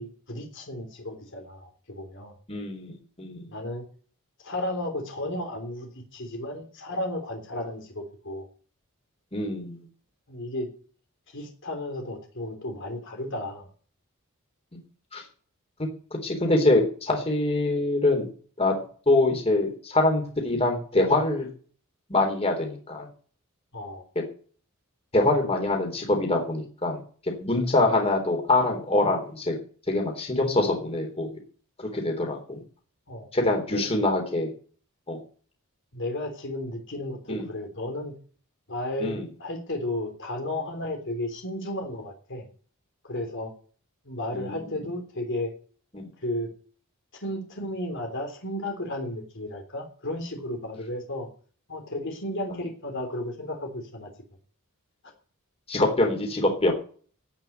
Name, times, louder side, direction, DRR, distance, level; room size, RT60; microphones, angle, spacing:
voice 1, 0.0-2.3 3.5-3.9 4.4-8.5 10.3-10.7 11.3-13.7 23.7-24.0 33.1-33.3 33.7-33.9 35.9-38.1 38.7-42.5 43.0-43.5 44.1-45.5 46.2-46.5 47.1-51.3 51.7-54.1, left 1 dB, 60° left, 3 dB, 3.4 m, -33 dB
voice 2, 2.5-3.5 9.3-9.8 14.7-14.8 15.1-15.2 16.2-18.3 18.6-18.7 19.1-21.5 22.1-23.1 25.1-27.0 27.4-29.6 29.9-31.3 31.8-32.6 33.3-34.5 35.1-35.2 37.3-37.5 39.0-39.2 44.3-44.6 45.9-46.1 55.7-56.7, left 2 dB, 30° left, 2 dB, 3.8 m, -24 dB
17.5 x 6.0 x 9.3 m, 0.43 s
head